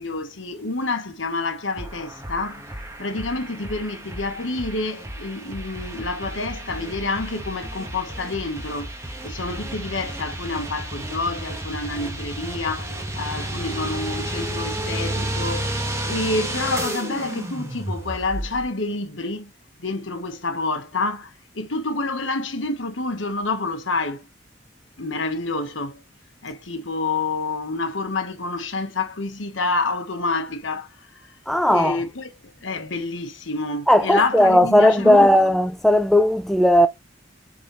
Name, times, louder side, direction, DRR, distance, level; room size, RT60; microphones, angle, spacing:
voice 1, 0.0-2.6 3.0-15.7 16.1-19.5 19.8-24.3 25.0-26.0 26.4-31.4 31.7-35.3, left 3 dB, 75° left, 1.3 m, -28 dB
sound 1, 1.8-18.7, right 1 dB, 15° right, 1.5 m, -32 dB
voice 2, 31.5-32.0 33.9-36.9, left 1 dB, ahead, 0.3 m, -16 dB
7.6 x 4.1 x 3.2 m
head